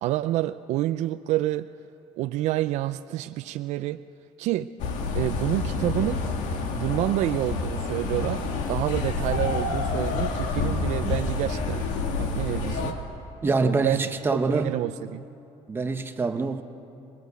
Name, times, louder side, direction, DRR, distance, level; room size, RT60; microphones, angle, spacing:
voice 1, 0.0-1.7 2.2-4.0 4.4-4.7 5.1-6.2 6.7-8.4 8.7-11.8 12.2-13.0 13.6-14.1 14.5-15.2, right 15 dB, 75° right, 10 dB, 0.5 m, -28 dB
sound 1, 4.8-12.9, left 3 dB, 90° left, 2.1 m, -28 dB
voice 2, 13.4-14.7 15.7-16.6, right 3 dB, 20° right, 7 dB, 1.0 m, -25 dB
21.0 x 20.5 x 8.2 m, 2.7 s
cardioid pair, 160°, 12 cm